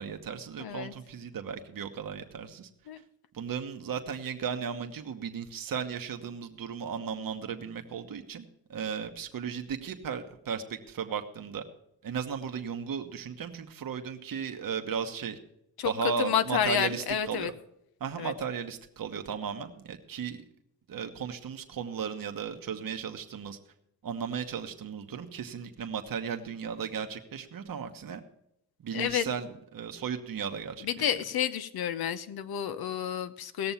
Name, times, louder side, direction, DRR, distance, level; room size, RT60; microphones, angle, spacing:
voice 1, 0.0-2.7 3.3-11.6 12.0-15.4 15.8-17.5 18.0-20.4 20.9-23.6 24.0-28.2 28.8-31.1, right 6 dB, 65° right, 5 dB, 1.3 m, -35 dB
voice 2, 0.6-0.9 2.9-3.0 15.8-15.9 16.2-17.5 18.2-18.3 28.9-29.3 30.8-33.7, left 9 dB, 80° left, 12 dB, 0.9 m, -30 dB
17.5 x 6.9 x 5.7 m, 0.79 s
cardioid pair, 65°, 36 cm